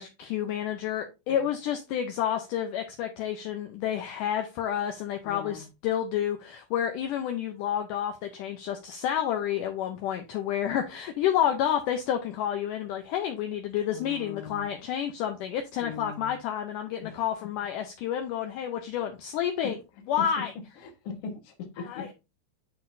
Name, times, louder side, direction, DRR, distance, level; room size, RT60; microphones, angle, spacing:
voice 1, 0.0-19.8 20.1-20.5 21.9-22.1, left 10 dB, 75° left, 2.0 m, -30 dB
voice 2, 5.2-5.7 13.9-14.7 15.8-16.3 17.0-17.2 19.6-19.7 20.2-20.4 20.8-22.1, left 5 dB, 55° left, 1.7 m, -40 dB
10.5 x 3.9 x 2.7 m
omnidirectional pair, 4.4 m